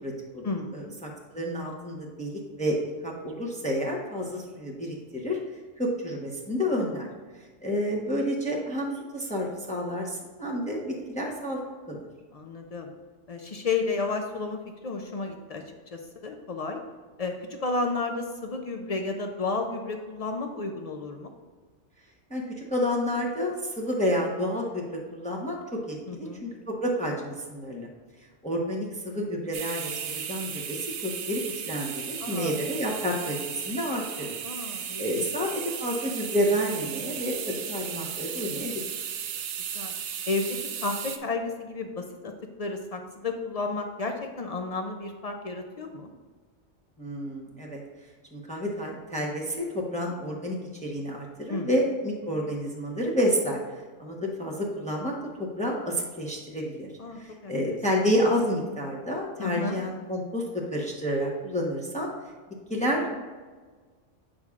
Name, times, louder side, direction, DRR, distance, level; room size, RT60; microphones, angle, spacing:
voice 1, 0.0-0.4 0.7-2.8 3.0-5.4 5.8-7.1 7.6-12.0 22.3-27.9 28.4-34.4 35.0-38.8 47.0-47.8 48.3-53.6 54.0-56.9 57.2-62.1 62.7-63.2, equal, 5° left, -1 dB, 0.8 m, -30 dB
voice 2, 12.3-12.9 13.3-16.8 17.2-21.3 26.1-26.4 32.2-32.5 34.4-35.3 39.7-39.9 40.3-42.3 42.6-46.1 51.5-51.7 57.0-57.6 59.4-59.8, left 3 dB, 55° left, 4 dB, 0.4 m, -32 dB
sound 1, 29.5-41.2, right 8 dB, 70° right, 0.8 m, -35 dB
8.2 x 6.2 x 2.4 m, 1.4 s
omnidirectional pair, 1.2 m